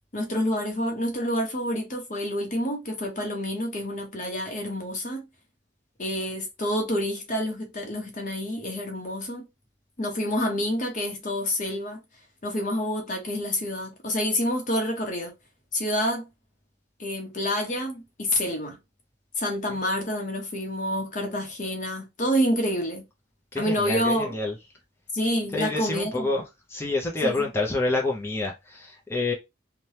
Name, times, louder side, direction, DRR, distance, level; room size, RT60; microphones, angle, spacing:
voice 1, 0.1-5.3 6.0-9.4 10.0-12.0 12.4-15.3 15.7-16.3 17.0-18.8 19.4-23.0 23.6-24.3 25.1-26.4 27.2-27.5, left 1 dB, 40° left, 0.8 m, -28 dB
voice 2, 23.5-24.6 25.5-26.4 26.7-29.3, left 2 dB, 15° left, 0.5 m, -28 dB
2.8 x 2.2 x 3.1 m
head